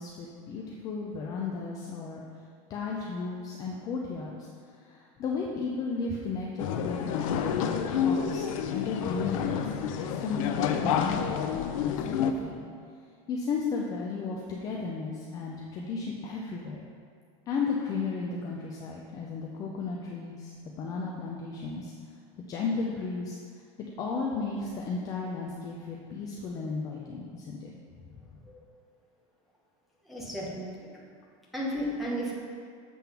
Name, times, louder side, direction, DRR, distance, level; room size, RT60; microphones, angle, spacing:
voice 1, 0.0-2.2 2.7-4.5 4.8-9.7 10.0-12.6 13.3-16.8 17.5-21.9 22.5-23.4 24.0-27.7 28.3-28.4, left 4 dB, 20° left, -2 dB, 0.4 m, -34 dB
sound 1, 6.6-12.3, left 8 dB, 90° left, 0.5 m, -29 dB
voice 2, 30.0-30.7 31.5-32.3, equal, ahead, -6 dB, 0.9 m, -33 dB
7.6 x 3.6 x 5.8 m, 2.2 s
supercardioid pair, 180°, 17 cm